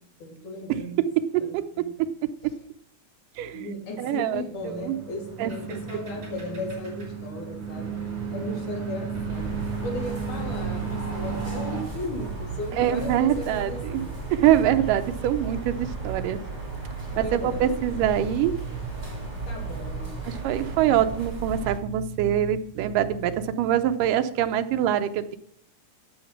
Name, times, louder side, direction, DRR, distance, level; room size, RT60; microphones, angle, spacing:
voice 1, 0.2-1.0 1.4-1.8 3.5-7.9 8.3-14.1 14.7-14.8 17.1-17.7 19.5-20.1 20.8-21.2, left 2 dB, 70° left, 1 dB, 4.3 m, -36 dB
voice 2, 2.0-2.3 3.4-3.7 4.0-5.0 5.4-5.8 12.7-14.0 14.3-16.4 17.2-18.9 20.3-25.4, right 10 dB, 85° right, 10 dB, 2.4 m, -24 dB
sound 1, 4.5-11.8, right 6 dB, 50° right, 5.1 m, -34 dB
sound 2, 9.3-21.8, right 3 dB, 15° right, 2.7 m, -35 dB
12.0 x 8.6 x 5.9 m, 0.71 s
omnidirectional pair, 3.7 m